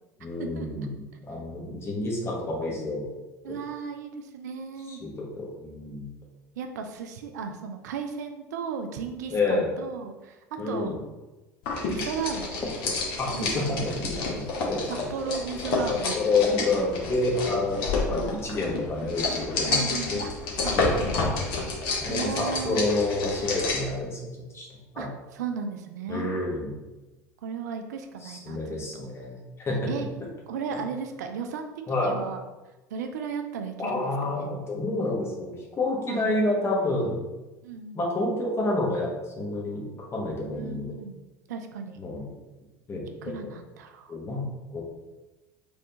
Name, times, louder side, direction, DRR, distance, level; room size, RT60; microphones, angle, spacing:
voice 1, 0.2-0.9 1.3-3.1 3.5-3.6 4.9-6.1 9.3-9.7 10.6-11.0 12.8-15.3 15.9-20.2 20.7-20.9 21.9-24.3 24.5-25.1 26.1-26.7 28.2-29.8 31.9-32.2 33.8-37.2 37.9-39.8 40.1-40.9 42.0-42.2 42.9-43.1 44.1-44.8, left 2 dB, 25° left, -2 dB, 1.1 m, -29 dB
voice 2, 3.4-5.0 6.6-11.0 11.9-12.6 13.3-13.7 14.9-16.2 18.1-18.3 19.7-20.3 20.6-21.2 22.1-22.8 23.4-23.6 25.0-26.3 27.4-29.1 29.9-32.4 32.9-34.6 36.1-36.3 36.8-37.2 37.6-38.0 40.5-41.2 41.5-42.0 43.2-44.2, right 6 dB, 70° right, 6 dB, 0.4 m, -35 dB
sound 1, 11.6-23.9, left 3 dB, 55° left, 1.0 m, -29 dB
3.4 x 3.3 x 2.8 m, 1.1 s
figure-of-eight pair, 70°, 10 cm